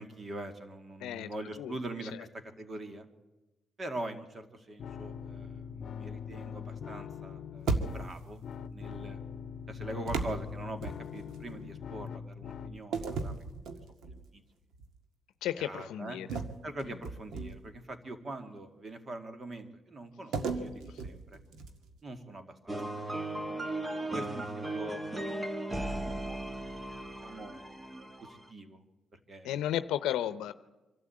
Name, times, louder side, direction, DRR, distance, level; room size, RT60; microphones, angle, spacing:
voice 1, 0.0-3.1 3.8-8.4 8.7-9.2 9.7-13.4 14.0-14.4 15.6-16.2 16.6-21.4 22.0-22.7 24.1-25.0 27.2-27.9 28.2-28.8 29.1-29.5, right 1 dB, 35° right, 8 dB, 2.3 m, -43 dB
voice 2, 1.0-1.3 1.6-1.7 15.4-16.3 16.8-16.9 20.9-21.0 29.4-30.5, left 11 dB, 90° left, 12 dB, 0.7 m, -33 dB
sound 1, 4.8-12.8, left 7 dB, 60° left, 0.8 m, -42 dB
sound 2, 7.7-8.3 10.1-11.4 12.9-14.3 14.7-15.0 16.3-17.8 20.3-22.0, right 4 dB, 80° right, 1.8 m, -36 dB
sound 3, 22.7-28.5, right 1 dB, 15° right, 1.4 m, -37 dB
25.0 x 12.5 x 8.6 m, 1.1 s
cardioid pair, 90°, 0 cm